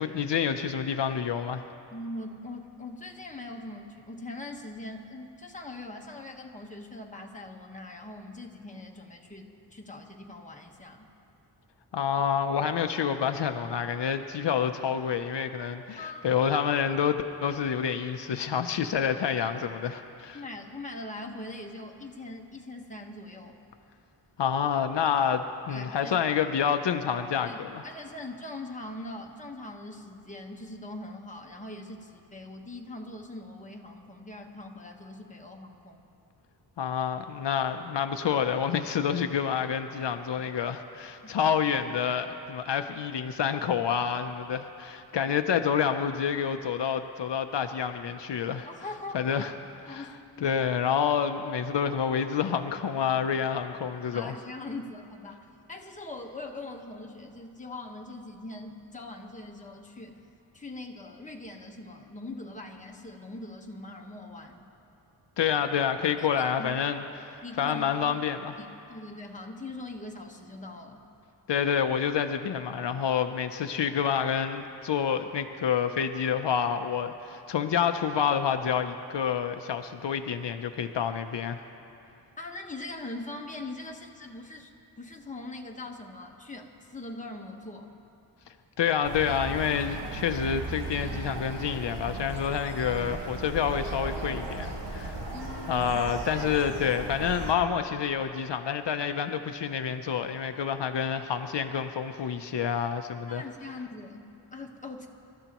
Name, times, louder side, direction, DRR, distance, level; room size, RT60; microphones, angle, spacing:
voice 1, 0.0-1.6 11.9-20.4 24.4-27.8 36.8-48.7 49.1-49.5 49.8-50.1 50.4-54.3 65.4-67.0 67.6-68.5 71.5-81.6 88.8-95.2 95.7-103.4, left 7 dB, 75° left, 7 dB, 0.6 m, -28 dB
voice 2, 1.9-11.1 16.0-16.2 20.3-23.6 25.7-26.2 27.4-36.0 41.2-41.5 48.7-49.2 49.8-50.6 54.1-60.2 60.5-64.7 66.2-66.9 67.4-68.2 68.6-71.1 82.4-84.7 85.0-87.9 95.3-96.0 103.3-105.1, left 2 dB, 15° left, 1 dB, 1.2 m, -42 dB
sound 1, 89.0-97.5, right 2 dB, 70° right, 1.9 m, -36 dB
27.0 x 13.0 x 3.0 m, 2.7 s
wide cardioid pair, 105°, 43 cm